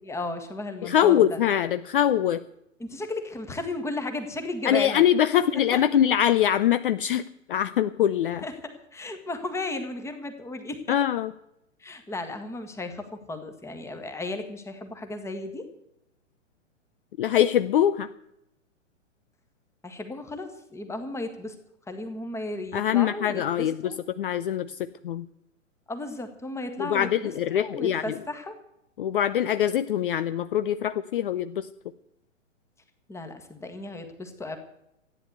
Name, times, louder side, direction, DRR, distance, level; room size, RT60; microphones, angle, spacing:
voice 1, 0.0-1.4 2.8-5.1 5.7-5.8 8.4-8.5 8.9-11.0 11.8-15.6 19.8-21.6 21.9-24.0 25.9-28.5 33.1-34.6, left 2 dB, 5° left, 7 dB, 1.7 m, -34 dB
voice 2, 0.8-2.4 4.6-8.4 10.9-11.3 17.2-18.1 22.7-23.8 24.2-24.8 25.0-25.3 26.8-28.1 29.0-31.7, left 10 dB, 45° left, 13 dB, 0.6 m, -23 dB
14.0 x 9.9 x 8.1 m, 0.82 s
figure-of-eight pair, 115°, 38 cm